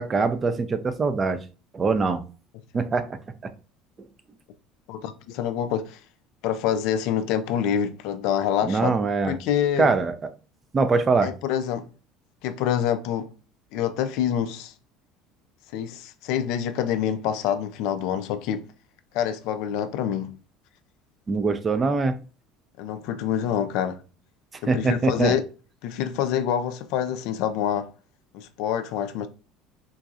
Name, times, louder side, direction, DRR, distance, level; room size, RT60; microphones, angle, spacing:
voice 1, 0.0-1.4 1.7-2.2 2.7-3.2 8.6-9.4 9.8-10.2 10.7-11.3 21.3-22.2 24.7-25.3, right 4 dB, 30° right, 0.4 m, -23 dB
voice 2, 4.9-6.0 6.4-9.0 9.2-9.9 11.2-11.9 12.4-13.3 13.7-14.7 15.7-18.7 19.1-20.3 22.8-24.0 24.7-25.4 25.8-27.9 28.3-29.3, left 9 dB, 65° left, 0.3 m, -26 dB
3.8 x 2.3 x 2.5 m
hypercardioid pair, 65°, 0 cm